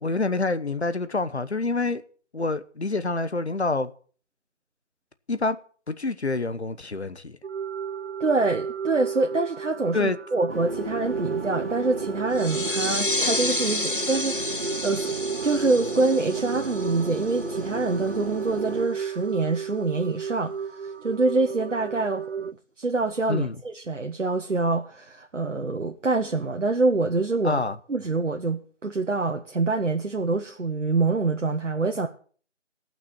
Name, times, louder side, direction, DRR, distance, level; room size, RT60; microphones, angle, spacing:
voice 1, 0.0-2.0 2.3-3.9 5.3-5.6 5.9-7.4 9.9-10.2 23.3-23.5 27.4-27.8, left 3 dB, 65° left, 1.1 m, -27 dB
sound 1, 7.4-22.5, right 7 dB, 65° right, 0.5 m, -34 dB
voice 2, 8.2-15.2 15.4-22.5 22.8-27.6 27.9-32.1, right 3 dB, 90° right, 1.3 m, -26 dB
sound 2, 10.5-18.8, right 2 dB, 50° right, 2.7 m, -34 dB
sound 3, 12.3-17.7, left 2 dB, 45° left, 0.7 m, -30 dB
17.0 x 6.0 x 7.0 m
figure-of-eight pair, 180°, 36 cm